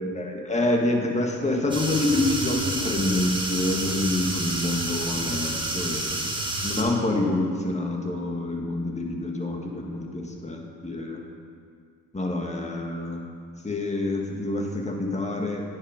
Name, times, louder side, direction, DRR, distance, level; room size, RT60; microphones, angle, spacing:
voice 1, 0.0-6.2 6.6-11.2 12.1-13.2 13.6-15.6, left 2 dB, 20° left, 1 dB, 1.6 m, -27 dB
sound 1, 1.7-6.8, right 2 dB, 15° right, 1.5 m, -29 dB
9.6 x 6.1 x 5.1 m, 2.2 s
supercardioid pair, 70°, 35 cm